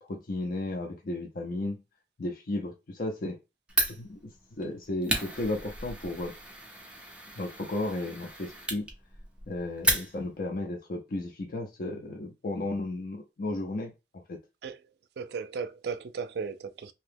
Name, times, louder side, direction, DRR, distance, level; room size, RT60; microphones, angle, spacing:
voice 1, 0.0-1.8 2.2-3.4 3.9-6.3 7.4-8.9 9.5-13.9 14.3-14.4, left 2 dB, 50° left, 0.5 m, -34 dB
Fire, 3.7-10.5, right 2 dB, 5° right, 0.6 m, -34 dB
voice 2, 15.2-16.9, right 5 dB, 65° right, 0.4 m, -36 dB
2.8 x 2.1 x 3.3 m
head